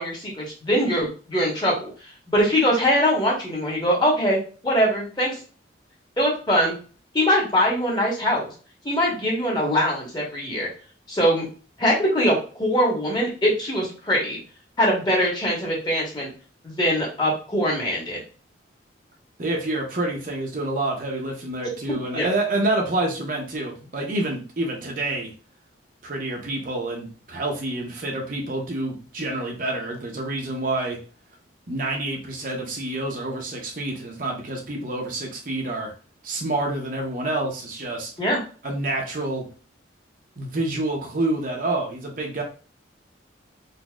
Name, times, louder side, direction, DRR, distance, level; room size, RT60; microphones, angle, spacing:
voice 1, 0.0-1.9 2.3-4.4 4.6-5.4 6.2-6.7 7.1-8.5 8.8-10.7 11.1-11.5 11.8-14.4 14.8-16.3 16.6-18.2 22.1-22.3 38.2-38.4, equal, 25° left, -4 dB, 1.2 m, -22 dB
voice 2, 19.4-25.3 26.0-31.0 31.7-35.9 36.2-38.1 38.6-39.5 40.4-42.4, right 2 dB, 45° right, 0 dB, 0.7 m, -28 dB
4.0 x 2.7 x 2.3 m, 0.38 s
head